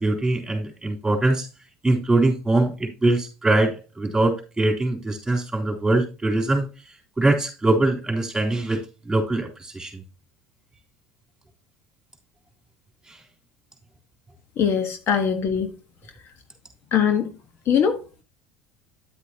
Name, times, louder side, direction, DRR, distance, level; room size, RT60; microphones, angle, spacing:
voice 1, 0.0-1.5 1.8-6.7 7.2-8.8 9.1-10.0, right 2 dB, 10° right, 3.5 m, -22 dB
voice 2, 14.6-15.7 16.9-17.3 17.7-18.0, left 7 dB, 50° left, 1.3 m, -21 dB
10.0 x 8.3 x 2.9 m
supercardioid pair, 95°, 5 cm